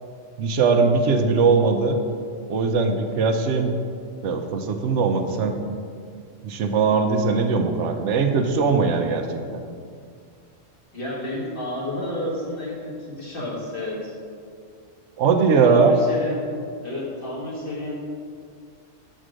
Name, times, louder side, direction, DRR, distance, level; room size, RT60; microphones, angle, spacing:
voice 1, 0.4-2.0 2.5-3.7 4.2-5.6 6.4-9.6 15.2-15.9, right 4 dB, 85° right, 5 dB, 1.0 m, -20 dB
voice 2, 10.9-14.1 15.6-16.4 16.8-18.0, left 1 dB, 50° left, -4 dB, 1.7 m, -31 dB
6.3 x 4.5 x 6.2 m, 2.2 s
omnidirectional pair, 1.2 m